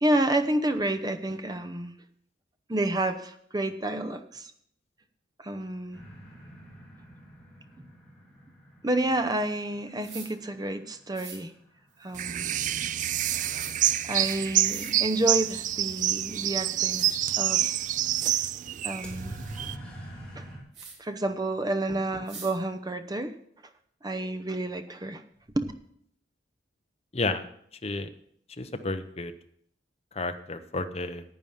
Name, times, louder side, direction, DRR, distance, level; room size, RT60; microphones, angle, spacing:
voice 1, 0.0-1.9 2.7-4.5 5.4-6.0 8.8-11.5 12.0-12.5 14.0-17.1 17.4-17.8 18.8-19.4 20.4-20.5 21.0-23.3 24.0-25.2 25.5-25.7, right 1 dB, 20° right, 8 dB, 0.7 m, -29 dB
sound 1, 5.9-11.7 19.0-20.6, right 1 dB, 5° left, 2.9 m, -45 dB
sound 2, 10.0-10.3 11.1-11.4 13.5-13.7 14.6-15.0 16.4-16.5 16.9-17.1 17.8-17.9 18.2-18.4 20.7-21.0 22.3-22.5, right 5 dB, 65° right, 3.2 m, -43 dB
sound 3, 12.2-19.7, right 11 dB, 40° right, 0.3 m, -27 dB
voice 2, 27.1-27.4 27.8-28.1 28.6-29.3 30.2-31.2, left 3 dB, 35° left, 8 dB, 0.8 m, -31 dB
10.5 x 8.9 x 5.6 m, 0.68 s
head